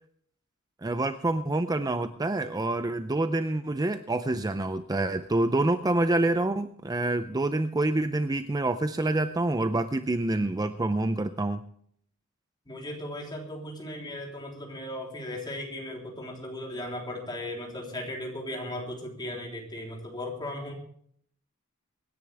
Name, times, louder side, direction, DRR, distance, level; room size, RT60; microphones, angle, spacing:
voice 1, 0.8-11.6, right 2 dB, 20° right, 10 dB, 0.5 m, -27 dB
voice 2, 12.7-20.7, left 1 dB, 20° left, 0 dB, 3.5 m, -37 dB
24.5 x 10.5 x 3.4 m, 0.62 s
head